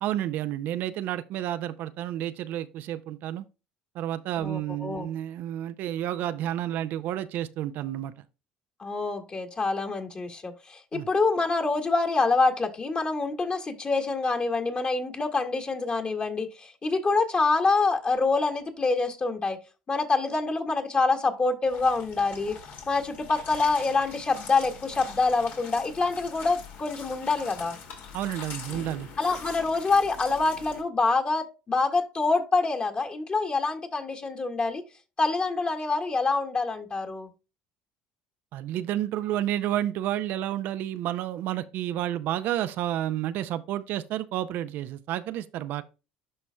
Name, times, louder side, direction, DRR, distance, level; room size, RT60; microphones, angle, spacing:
voice 1, 0.0-3.4 3.9-8.1 10.9-11.1 28.1-29.1 38.5-45.8, right 12 dB, 65° right, 0.4 m, -30 dB
voice 2, 4.4-5.1 8.8-19.6 19.9-22.6 22.9-27.8 29.2-34.8 35.2-37.3, left 3 dB, 30° left, 1.8 m, -26 dB
sound 1, 21.7-30.8, left 6 dB, 60° left, 2.2 m, -43 dB
12.0 x 4.2 x 2.2 m
supercardioid pair, 75°, 4 cm